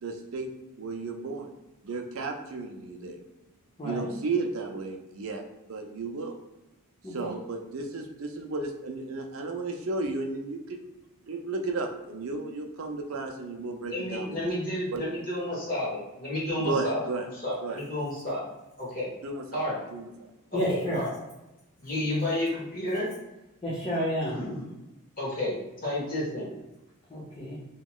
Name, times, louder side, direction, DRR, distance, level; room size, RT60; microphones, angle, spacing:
voice 1, 0.0-0.5 0.8-1.5 1.8-3.2 3.8-6.4 7.1-10.8 11.3-14.4 14.9-15.0 16.6-17.3 17.6-17.8 19.2-19.6 19.9-20.3, right 3 dB, 65° right, 3 dB, 0.4 m, -33 dB
voice 2, 3.8-4.1 7.0-7.3 20.5-21.0 23.6-24.3 27.1-27.6, equal, 25° left, -7 dB, 0.5 m, -30 dB
voice 3, 13.9-17.0 17.4-18.5 18.8-19.1 19.5-19.8 20.5-21.1 21.8-23.1 24.3-24.6 25.2-25.6 25.8-26.5, left 1 dB, 40° left, -6 dB, 1.1 m, -31 dB
2.9 x 2.8 x 2.3 m, 0.98 s
head